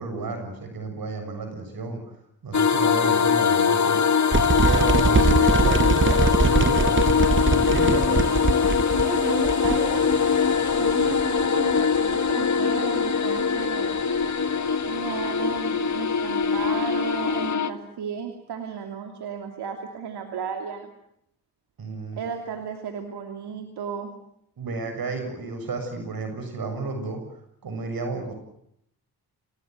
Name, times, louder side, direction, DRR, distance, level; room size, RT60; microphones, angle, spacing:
voice 1, 0.0-2.0 2.4-4.0 4.6-8.3 21.8-22.2 24.6-27.2 27.6-28.3, right 3 dB, 65° right, 6 dB, 7.3 m, -32 dB
sound 1, 2.5-17.7, left 6 dB, 45° left, 1.7 m, -22 dB
sound 2, 4.3-12.3, right 3 dB, 30° right, 1.9 m, -23 dB
voice 2, 8.9-10.2 10.8-14.0 14.9-20.9 22.2-24.1, right 7 dB, 85° right, 4 dB, 2.9 m, -34 dB
28.0 x 19.0 x 9.3 m, 0.74 s
cardioid pair, 70°, 38 cm